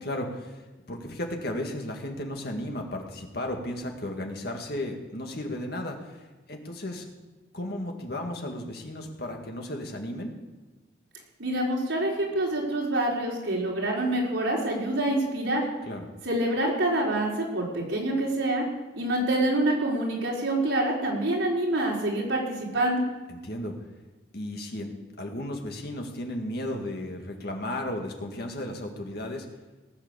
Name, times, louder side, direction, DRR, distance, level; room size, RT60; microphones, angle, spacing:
voice 1, 0.0-0.6 0.9-7.1 7.5-10.3 15.8-16.1 23.3-23.7 24.3-24.9 25.2-29.5, left 1 dB, 55° left, 2 dB, 2.1 m, -34 dB
voice 2, 11.4-15.6 16.2-18.6 18.9-23.0, right 1 dB, 80° right, -3 dB, 4.5 m, -26 dB
18.5 x 8.2 x 7.0 m, 1.2 s
head